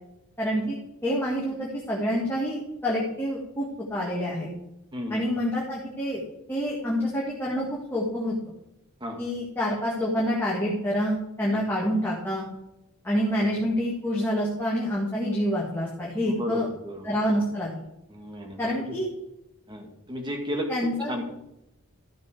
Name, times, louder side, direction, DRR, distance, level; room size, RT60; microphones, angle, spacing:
voice 1, 0.4-4.5 5.1-6.2 6.5-8.3 9.2-12.4 13.0-16.7 17.0-17.7 18.6-19.1 20.7-21.1, equal, 10° left, -6 dB, 1.8 m, -27 dB
voice 2, 4.9-5.3 9.0-9.2 11.5-11.6 13.3-13.5 16.2-17.4 18.1-19.0 19.7-21.3, equal, 20° right, 3 dB, 1.6 m, -34 dB
13.5 x 6.7 x 4.8 m, 0.88 s
head